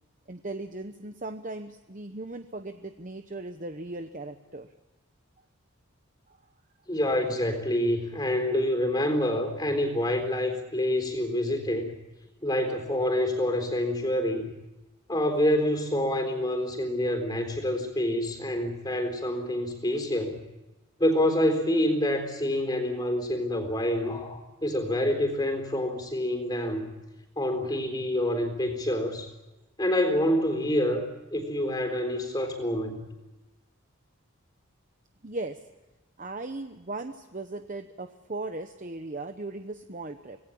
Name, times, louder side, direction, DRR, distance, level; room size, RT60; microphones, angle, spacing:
voice 1, 0.3-4.7 6.3-6.4 35.2-35.6 36.2-40.4, right 2 dB, 35° right, 7 dB, 0.9 m, -37 dB
voice 2, 6.9-11.9 12.4-14.5 15.1-20.4 21.0-26.9 27.4-29.3 29.8-33.0, left 1 dB, 20° left, 5 dB, 3.8 m, -27 dB
26.0 x 19.0 x 8.7 m, 1.1 s
head